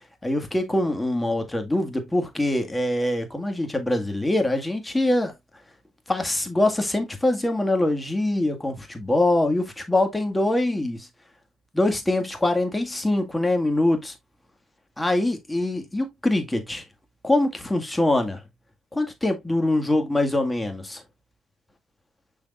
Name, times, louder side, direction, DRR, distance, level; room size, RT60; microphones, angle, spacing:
voice 1, 0.2-5.3 6.1-11.1 11.7-14.1 15.0-16.8 17.2-18.4 18.9-21.0, left 1 dB, 10° left, 1.9 m, -23 dB
6.3 x 6.3 x 2.5 m
cardioid pair, 90°, 0 cm